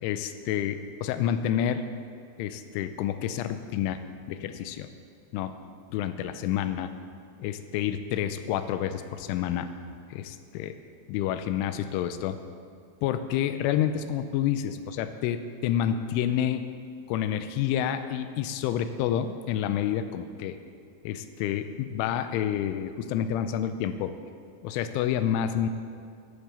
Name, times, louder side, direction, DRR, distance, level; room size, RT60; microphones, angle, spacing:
voice 1, 0.0-1.8 2.4-4.0 4.3-4.9 5.3-5.6 5.9-6.9 7.4-9.7 10.1-10.7 11.1-12.4 13.0-16.7 17.1-20.6 21.0-24.2 24.6-25.7, left 10 dB, 85° left, 9 dB, 3.1 m, -29 dB
12.0 x 11.0 x 6.9 m, 2.2 s
omnidirectional pair, 5.6 m